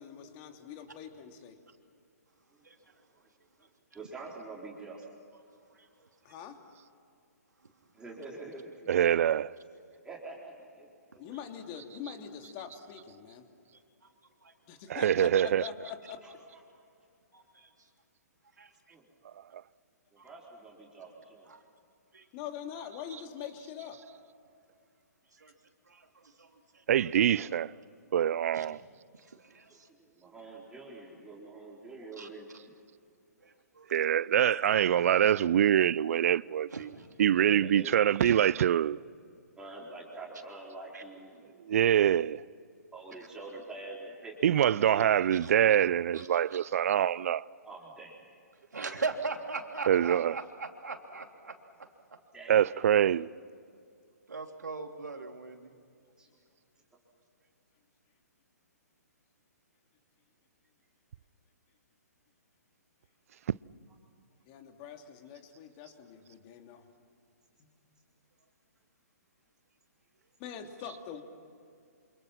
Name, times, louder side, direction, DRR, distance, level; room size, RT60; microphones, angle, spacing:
voice 1, 0.0-1.6 6.2-6.6 11.2-13.5 14.7-16.2 22.3-24.0 64.5-66.9 67.6-67.7 70.4-71.2, left 8 dB, 35° left, 2.9 m, -44 dB
voice 2, 2.5-2.9 3.6-3.7 3.9-5.0 7.9-8.9 10.0-11.2 16.2-16.3 18.9-19.1 20.1-21.5 27.1-27.4 29.7-29.8 30.0-32.5 37.3-38.0 39.6-41.5 42.9-45.1 47.6-48.2 52.3-53.3 56.2-56.3, right 2 dB, 10° right, 4.3 m, -46 dB
voice 3, 8.9-9.5 14.9-15.7 19.5-19.6 26.9-27.7 28.1-28.8 33.9-36.9 37.2-39.0 41.6-42.4 44.4-47.5 49.9-50.4 52.5-53.3, right 10 dB, 55° right, 0.6 m, -25 dB
voice 4, 17.3-17.7 18.6-18.7 20.2-20.3 21.0-21.1 21.5-21.6 22.1-22.2 25.4-25.5 25.9-26.1 26.4-26.6 28.5-28.6 29.2-29.9 32.2-32.3 33.4-33.9 34.5-34.7 36.7-37.1 38.2-38.4 40.9-41.0 45.3-45.5 46.1-46.3 48.7-51.5 54.3-55.7, right 4 dB, 85° right, 3.1 m, -40 dB
28.0 x 27.0 x 6.0 m
hypercardioid pair, 130°, 9 cm